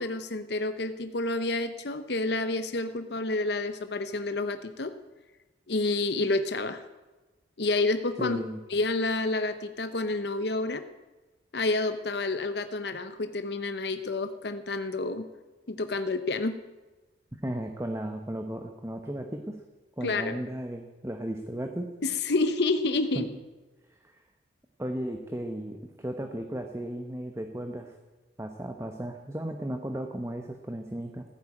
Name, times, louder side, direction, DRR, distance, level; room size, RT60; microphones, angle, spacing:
voice 1, 0.0-4.9 5.7-6.8 7.6-8.4 8.7-10.8 11.5-15.3 15.7-16.6 20.0-20.4 22.0-23.3, left 2 dB, 60° left, 10 dB, 0.8 m, -29 dB
voice 2, 8.2-8.6 17.3-19.6 20.0-21.9 23.1-23.4 24.0-24.2 24.8-27.9 28.4-31.2, right 1 dB, 15° right, 5 dB, 1.0 m, -35 dB
15.0 x 9.6 x 8.6 m, 1.2 s
head